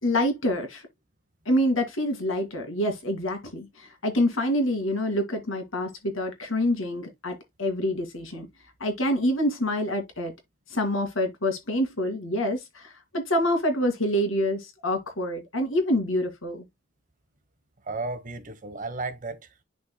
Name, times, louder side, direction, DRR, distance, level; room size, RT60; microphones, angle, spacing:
voice 1, 0.0-0.9 1.5-8.5 8.8-10.3 10.7-16.6, left 1 dB, 80° left, 2.3 m, -26 dB
voice 2, 17.8-19.6, right 3 dB, 40° right, 1.1 m, -34 dB
11.0 x 4.3 x 2.2 m
head